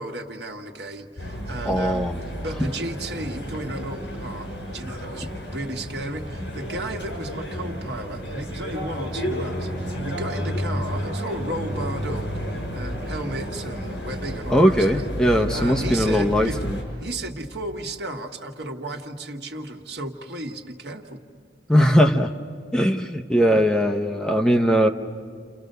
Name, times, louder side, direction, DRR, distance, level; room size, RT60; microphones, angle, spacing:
voice 1, 0.0-15.0 15.5-16.6 17.0-21.2, right 1 dB, 65° right, 3 dB, 1.7 m, -34 dB
sound 1, 1.2-16.8, equal, 70° left, 7.1 m, -31 dB
voice 2, 1.6-2.3 14.5-16.8 21.7-22.3 22.7-24.9, equal, 5° left, 4 dB, 0.8 m, -20 dB
30.0 x 28.0 x 6.8 m, 2.3 s
head